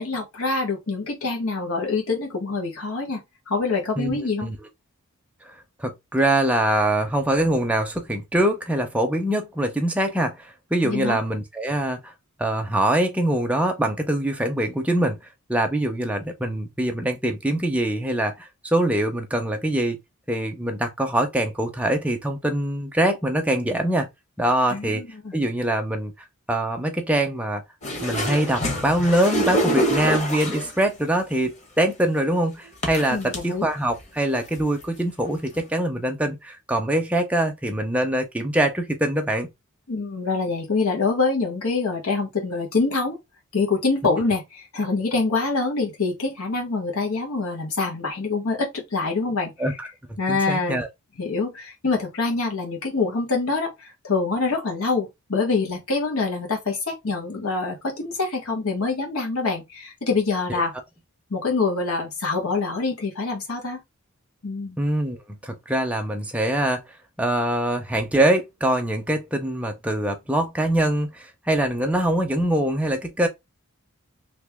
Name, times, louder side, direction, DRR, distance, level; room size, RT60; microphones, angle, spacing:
voice 1, 0.0-4.5 10.8-11.2 24.7-25.4 33.1-33.6 39.9-43.2 43.5-49.7 50.2-50.8 51.2-60.7 61.3-63.8 64.4-64.8, left 3 dB, 75° left, 1.3 m, -25 dB
voice 2, 4.0-4.6 5.8-12.1 12.4-15.2 15.5-20.0 20.3-24.1 24.4-25.0 25.3-26.1 26.5-27.6 28.0-39.5 49.6-49.9 50.3-50.9 60.5-60.6 64.8-66.8 67.2-73.3, right 1 dB, 5° right, 0.5 m, -23 dB
sound 1, 27.8-30.8 31.8-31.9 32.8-33.4 34.0-34.1 34.4-34.8 35.6-35.7, equal, 30° left, 1.0 m, -25 dB
2.9 x 2.8 x 3.5 m
head